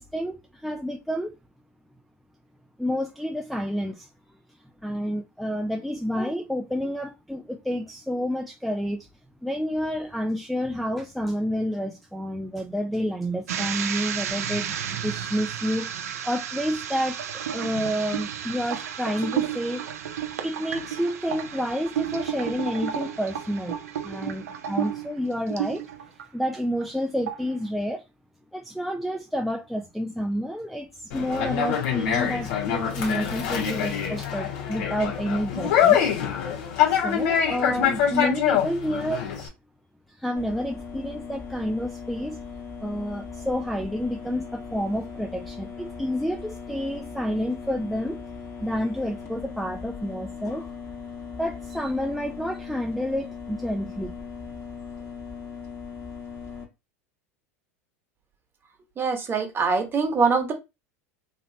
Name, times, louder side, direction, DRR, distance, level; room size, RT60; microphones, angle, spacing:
voice 1, 0.0-1.4 2.8-4.1 4.8-9.1 9.4-17.2 17.5-19.9 20.4-25.8 26.3-28.0 28.5-36.1 36.9-39.3 40.1-42.4 42.8-48.2 48.6-50.7 51.4-54.2, equal, ahead, 0.4 m, -29 dB
sound 1, 13.5-26.2 26.6-27.0 27.3-27.6, right 9 dB, 80° right, 0.6 m, -32 dB
Conversation, 31.1-39.5, left 9 dB, 65° left, 1.5 m, -24 dB
sound 2, 40.4-56.6, left 5 dB, 30° left, 1.4 m, -39 dB
voice 2, 59.0-60.5, right 4 dB, 30° right, 1.1 m, -23 dB
3.0 x 2.9 x 2.7 m
hypercardioid pair, 95°, 8 cm